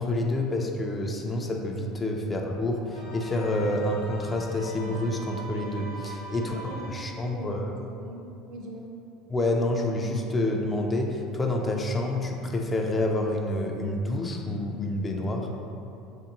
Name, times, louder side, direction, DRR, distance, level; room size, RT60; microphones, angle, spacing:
voice 1, 0.0-6.6 6.9-7.7 9.3-15.5, left 1 dB, 25° left, 1 dB, 0.3 m, -28 dB
sound 1, 2.9-7.2, right 1 dB, 85° right, 0.8 m, -42 dB
voice 2, 6.3-8.9, right 1 dB, 50° right, 0 dB, 0.5 m, -42 dB
3.4 x 2.5 x 2.9 m, 2.7 s
figure-of-eight pair, 70°, 0 cm